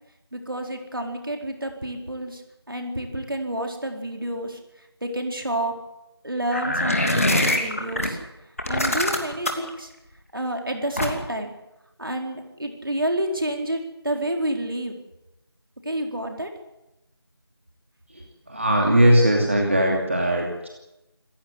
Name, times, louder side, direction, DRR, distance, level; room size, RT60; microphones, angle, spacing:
voice 1, 0.3-2.4 2.7-4.6 5.0-5.7 6.2-8.2 8.7-9.9 10.3-11.5 12.0-13.8 14.0-15.0 15.8-16.5, right 1 dB, 55° right, 3 dB, 4.5 m, -29 dB
sound 1, 6.5-8.1 8.6-9.7 11.0-11.4, left 1 dB, 35° left, 2.7 m, -23 dB
voice 2, 18.5-20.7, right 1 dB, 30° right, 0 dB, 2.6 m, -19 dB
27.0 x 15.5 x 8.3 m, 0.93 s
figure-of-eight pair, 175°, 14 cm